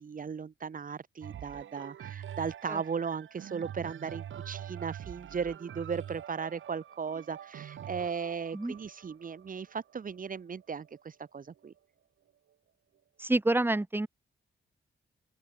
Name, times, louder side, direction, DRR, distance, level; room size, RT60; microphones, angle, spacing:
voice 1, 0.0-11.7, right 6 dB, 45° right, 3.4 m, -37 dB
sound 1, 1.2-11.0 11.7-11.8, right 10 dB, 75° right, 2.0 m, -45 dB
voice 2, 13.2-14.1, right 2 dB, 10° right, 1.6 m, -28 dB
open air
wide cardioid pair, 135°, 20 cm